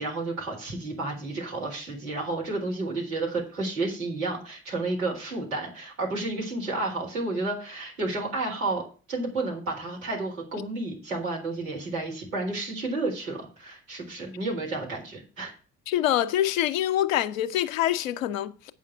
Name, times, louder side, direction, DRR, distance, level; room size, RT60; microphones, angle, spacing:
voice 1, 0.0-15.5, right 2 dB, 80° right, 4.0 m, -31 dB
voice 2, 15.9-18.7, left 12 dB, 75° left, 0.8 m, -25 dB
8.7 x 5.7 x 8.0 m
figure-of-eight pair, 50°, 40 cm